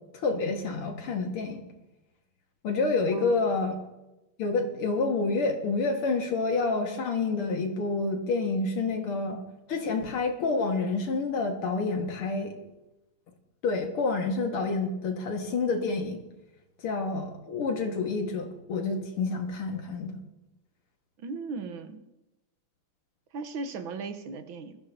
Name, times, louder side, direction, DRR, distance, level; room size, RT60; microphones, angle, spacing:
voice 1, 0.1-1.6 2.6-3.8 4.4-9.4 9.7-12.5 13.6-16.2 16.8-20.2, left 3 dB, 85° left, 2 dB, 2.6 m, -28 dB
voice 2, 21.2-22.0 23.3-24.8, right 4 dB, 70° right, 9 dB, 1.7 m, -37 dB
21.5 x 14.0 x 2.8 m, 0.97 s
omnidirectional pair, 2.4 m